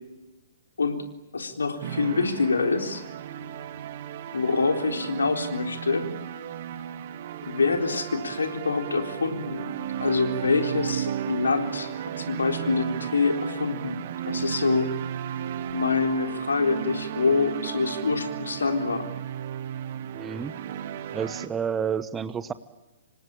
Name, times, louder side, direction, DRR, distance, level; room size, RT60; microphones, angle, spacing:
voice 1, 1.3-3.0 4.3-6.1 7.4-9.7 10.0-14.0 14.3-14.9 15.7-19.1, left 4 dB, 65° left, 4 dB, 3.8 m, -25 dB
sound 1, 1.8-21.5, right 10 dB, 45° right, 1.5 m, -34 dB
voice 2, 20.1-20.5 21.1-22.5, right 7 dB, 15° right, 15 dB, 0.9 m, -30 dB
27.5 x 25.0 x 8.7 m, 1.1 s
figure-of-eight pair, 120°, 0 cm